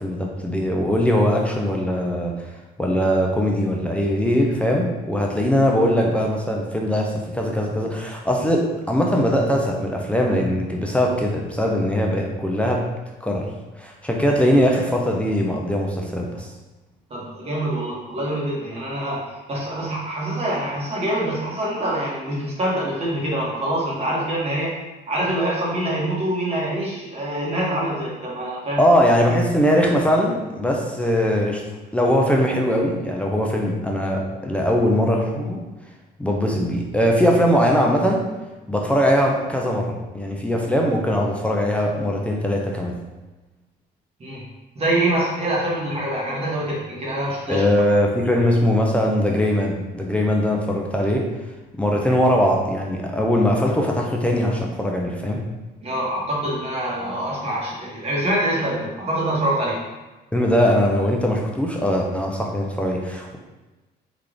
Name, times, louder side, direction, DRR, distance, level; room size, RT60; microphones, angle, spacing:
voice 1, 0.0-2.5 2.8-12.8 13.2-13.5 13.8-16.5 28.8-31.6 31.9-35.6 36.2-38.3 38.7-42.9 47.5-51.3 51.7-55.4 60.3-63.4, equal, 5° left, -1 dB, 0.4 m, -21 dB
voice 2, 17.1-24.7 25.1-28.8 44.2-44.4 44.7-47.8 55.8-59.8, right 1 dB, 35° right, -4 dB, 1.0 m, -25 dB
3.3 x 2.4 x 3.7 m, 1.1 s
cardioid pair, 130°, 18 cm